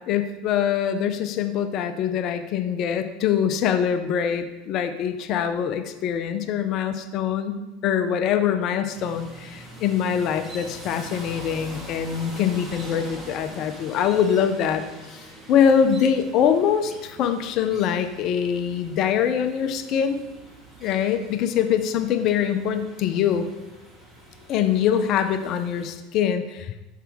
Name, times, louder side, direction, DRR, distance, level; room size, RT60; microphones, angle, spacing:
voice 1, 0.1-14.8 15.1-20.2 20.8-23.4 24.5-26.8, left 8 dB, 50° left, 8 dB, 0.6 m, -23 dB
sound 1, 8.9-25.9, right 1 dB, 25° right, 1.9 m, -44 dB
5.8 x 5.6 x 3.6 m, 1.0 s
hypercardioid pair, 85°, 0 cm